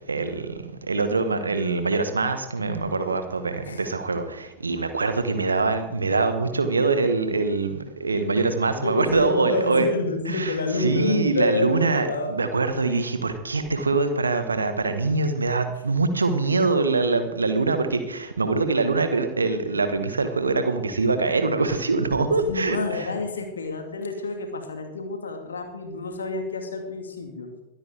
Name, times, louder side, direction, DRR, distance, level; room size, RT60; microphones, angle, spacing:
voice 1, 0.1-9.9 10.3-10.5 10.8-23.1, right 3 dB, 75° right, 9 dB, 1.5 m, -24 dB
voice 2, 8.8-12.4 22.4-27.5, left 3 dB, 70° left, 4 dB, 2.3 m, -29 dB
23.0 x 9.0 x 3.6 m, 0.88 s
figure-of-eight pair, 90°, 0 cm